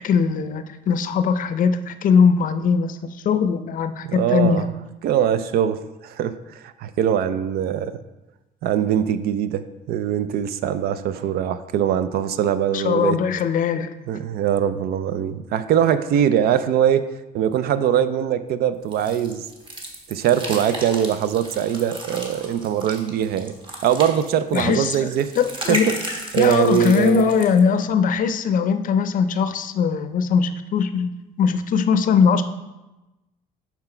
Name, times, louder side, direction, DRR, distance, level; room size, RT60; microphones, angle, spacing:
voice 1, 0.0-3.0 3.2-4.7 12.7-13.9 24.5-25.1 25.4-25.9 26.4-31.1 31.4-32.4, left 6 dB, 50° left, 11 dB, 0.5 m, -20 dB
voice 2, 4.0-4.7 5.0-8.0 8.6-13.2 14.1-17.1 17.3-19.5 20.1-23.5 23.8-25.3 25.7-26.0 26.3-27.2, right 9 dB, 70° right, 13 dB, 0.4 m, -22 dB
sound 1, 18.9-27.6, right 1 dB, 30° right, 1.3 m, -34 dB
5.8 x 5.8 x 4.4 m, 1.1 s
cardioid pair, 110°, 17 cm